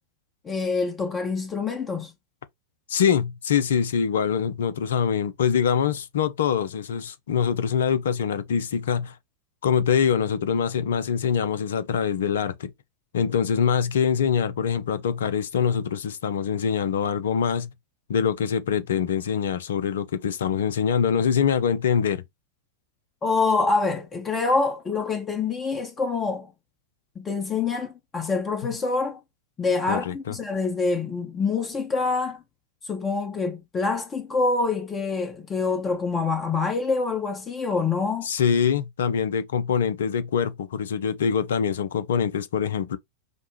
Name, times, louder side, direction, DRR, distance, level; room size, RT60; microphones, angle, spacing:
voice 1, 0.4-2.1 23.2-26.5 27.1-29.2 29.6-32.4 32.9-38.3, left 4 dB, 20° left, 1.0 m, -26 dB
voice 2, 2.9-9.1 9.6-12.7 13.1-17.7 18.1-22.2 29.9-30.4 38.2-43.0, left 7 dB, 60° left, 0.5 m, -24 dB
5.2 x 2.2 x 3.1 m
figure-of-eight pair, 90°, 0 cm